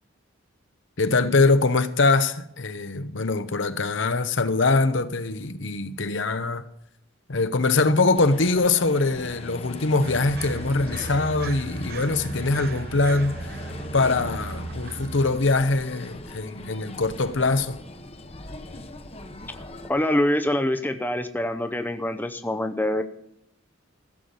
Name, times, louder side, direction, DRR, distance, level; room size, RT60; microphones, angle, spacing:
voice 1, 1.0-6.7 7.3-17.8, left 3 dB, 60° left, 0.9 m, -23 dB
sound 1, 8.1-19.9, left 1 dB, 30° left, 1.1 m, -40 dB
sound 2, 10.0-15.4, right 2 dB, 45° right, 0.9 m, -36 dB
voice 2, 19.9-23.0, left 1 dB, 10° left, 0.7 m, -25 dB
15.5 x 7.1 x 8.0 m
head